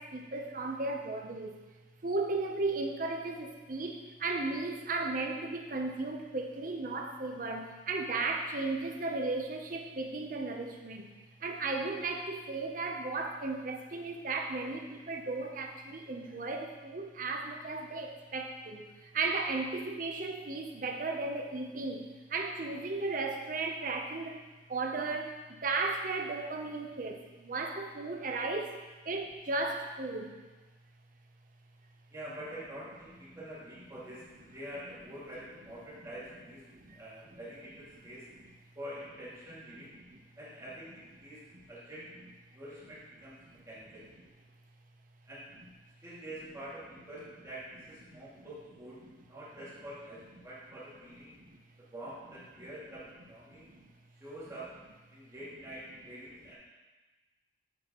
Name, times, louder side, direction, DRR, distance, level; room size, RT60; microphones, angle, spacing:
voice 1, 0.0-1.6 2.0-11.1 11.4-24.4 24.7-28.7 29.0-30.4 36.7-37.0 40.0-40.2 43.5-43.6 48.1-48.5 51.4-51.6 53.6-53.9, right 3 dB, 50° right, 3 dB, 0.7 m, -35 dB
voice 2, 32.1-36.6 36.9-38.3 38.8-40.0 40.4-41.4 41.7-42.1 42.5-43.4 43.7-44.1 45.3-45.5 46.0-49.0 49.3-51.3 51.9-53.7 54.2-54.7 55.1-56.6, right 1 dB, 15° right, -10 dB, 2.2 m, -46 dB
8.2 x 5.7 x 3.0 m, 1.2 s
head